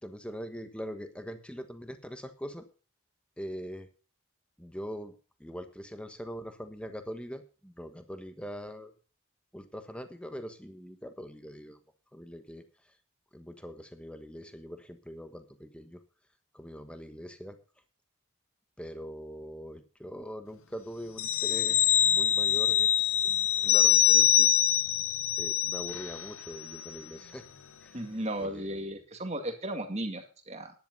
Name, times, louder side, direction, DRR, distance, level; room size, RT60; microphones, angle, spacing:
voice 1, 0.0-2.7 3.4-3.9 4.6-5.1 5.4-8.9 9.5-11.8 12.1-13.0 13.3-16.0 16.5-17.6 18.8-22.9 23.2-24.5 25.4-27.5 27.8-28.0 28.4-28.9, equal, 5° left, 8 dB, 1.3 m, -42 dB
sound 1, 21.2-26.3 26.6-26.8, left 11 dB, 70° left, 0.8 m, -24 dB
voice 2, 27.9-30.7, right 1 dB, 30° right, 6 dB, 2.1 m, -35 dB
11.0 x 10.5 x 5.4 m, 0.35 s
head